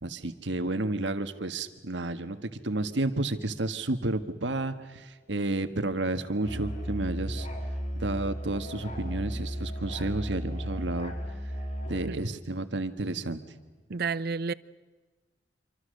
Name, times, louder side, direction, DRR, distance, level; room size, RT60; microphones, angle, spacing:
voice 1, 0.0-7.5 7.9-11.1 11.9-13.4, right 2 dB, 80° right, 1.6 m, -31 dB
Musical instrument, 6.4-12.1, equal, 40° left, 2.7 m, -35 dB
voice 2, 13.9-14.5, right 5 dB, 60° right, 0.7 m, -30 dB
27.0 x 25.0 x 6.6 m
head